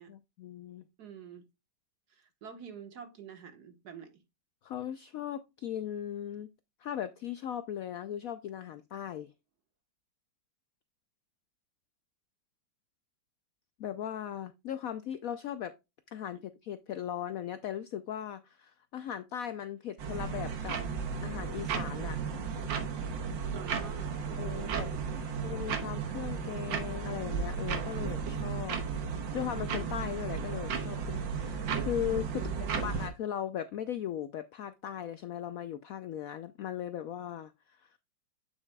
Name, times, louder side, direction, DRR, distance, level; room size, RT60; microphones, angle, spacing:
voice 1, 0.1-0.8 4.6-6.5 6.8-9.3 13.8-15.8 16.1-20.8 21.2-22.2 24.4-24.9 25.4-28.8 29.3-38.0, left 10 dB, 75° left, 0.8 m, -38 dB
voice 2, 1.0-1.5 2.1-4.2 23.5-25.4 32.4-33.0, right 8 dB, 60° right, 1.8 m, -47 dB
sound 1, 20.0-33.1, right 6 dB, 85° right, 1.8 m, -34 dB
8.4 x 7.1 x 2.2 m
omnidirectional pair, 2.0 m